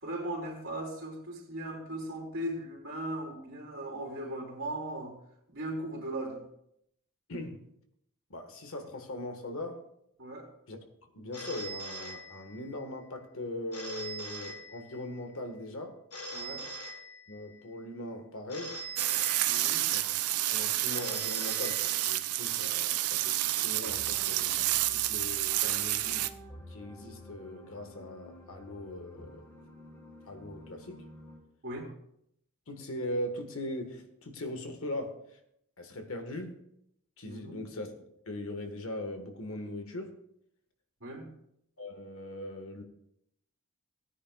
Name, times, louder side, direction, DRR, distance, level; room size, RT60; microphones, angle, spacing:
voice 1, 0.0-5.2 5.5-6.4 10.2-10.5 16.3-16.7 19.4-19.8 31.6-31.9 37.2-37.6 41.0-41.3, right 1 dB, 60° right, 3.5 m, -38 dB
voice 2, 7.3-7.6 8.3-9.9 10.7-10.8 11.1-16.0 17.3-18.8 19.9-20.2 20.5-26.3 26.7-29.5 30.3-31.1 32.7-35.4 35.8-36.6 37.2-37.9 38.3-40.2 41.8-42.8, left 1 dB, 65° left, 1.5 m, -40 dB
Telephone, 11.3-12.8 13.7-15.2 16.1-17.6 18.5-20.0 20.9-22.4, right 1 dB, 90° left, 1.3 m, -42 dB
sound 1, 19.0-26.3, right 15 dB, 80° right, 0.5 m, -30 dB
sound 2, 23.6-31.4, equal, 15° left, 2.4 m, -51 dB
17.5 x 9.8 x 2.3 m
head